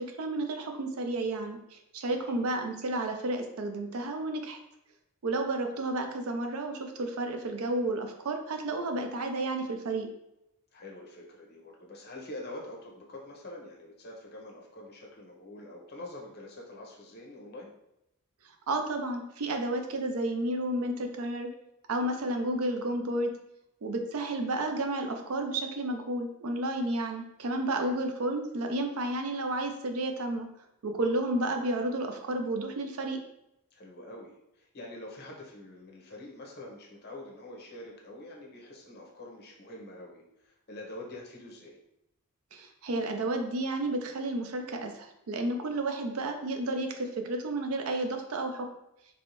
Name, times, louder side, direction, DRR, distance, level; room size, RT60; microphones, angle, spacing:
voice 1, 0.0-4.6 5.2-10.1 18.7-21.5 21.9-23.3 23.8-30.5 30.8-33.2 42.5-48.7, right 2 dB, 70° right, 5 dB, 0.5 m, -31 dB
voice 2, 10.7-17.7 27.8-28.0 33.7-41.8, left 1 dB, 45° left, -2 dB, 0.8 m, -45 dB
3.0 x 2.6 x 2.9 m, 0.84 s
head